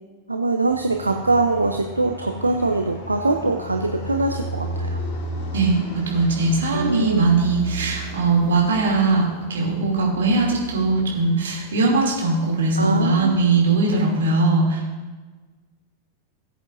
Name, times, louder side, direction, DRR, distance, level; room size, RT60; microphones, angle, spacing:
voice 1, 0.3-5.0 6.7-7.3 12.8-13.4, right 3 dB, 80° right, 4 dB, 0.6 m, -23 dB
Fixed-wing aircraft airplane, 0.7-14.2, right 1 dB, 40° left, 3.4 m, -34 dB
voice 2, 5.5-14.8, right 3 dB, 65° right, -2 dB, 2.8 m, -20 dB
19.0 x 8.0 x 2.7 m, 1.3 s
figure-of-eight pair, 90°, 0 cm